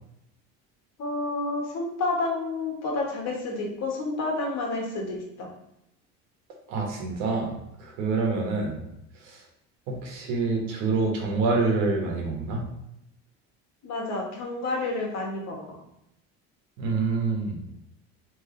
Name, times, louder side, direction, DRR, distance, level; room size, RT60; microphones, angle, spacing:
voice 1, 1.0-5.5 13.8-15.8, left 2 dB, 60° left, -1 dB, 1.4 m, -30 dB
voice 2, 6.7-8.8 9.2-9.4 9.9-12.6 16.8-17.6, right 4 dB, 90° right, 0 dB, 1.3 m, -27 dB
3.4 x 3.4 x 3.8 m, 0.83 s
cardioid pair, 120°, 31 cm